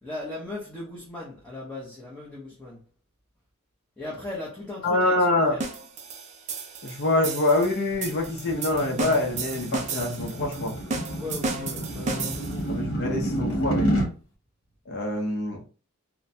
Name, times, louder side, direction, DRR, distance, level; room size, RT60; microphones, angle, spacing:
voice 1, 0.0-2.8 4.0-5.6 11.1-12.8, left 2 dB, 5° left, 0.7 m, -38 dB
voice 2, 4.8-5.6 6.8-10.8 12.7-13.9 14.9-15.6, left 2 dB, 50° left, 0.6 m, -25 dB
sound 1, 5.6-12.7, right 4 dB, 35° right, 0.4 m, -34 dB
sound 2, 7.6-14.1, equal, 75° left, 1.0 m, -30 dB
2.9 x 2.1 x 2.6 m
head